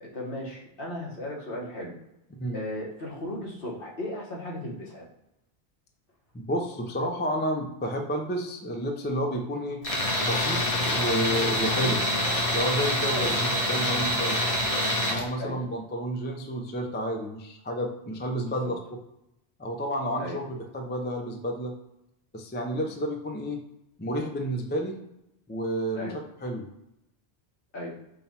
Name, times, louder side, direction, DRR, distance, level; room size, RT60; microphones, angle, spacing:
voice 1, 0.0-1.9 2.5-5.1 13.1-13.3 15.4-15.6 18.6-18.7 20.2-20.4 25.9-26.1 27.7-28.0, left 1 dB, 60° left, -3 dB, 1.4 m, -36 dB
voice 2, 6.3-9.8 10.2-12.0 12.5-14.4 15.1-18.8 19.6-21.7 22.3-23.6 24.0-25.0 25.5-26.1 26.4-26.6, equal, 15° left, 2 dB, 0.4 m, -30 dB
Tools, 9.8-15.2, left 1 dB, 35° left, 0.9 m, -26 dB
5.4 x 2.3 x 4.2 m, 0.84 s
omnidirectional pair, 1.1 m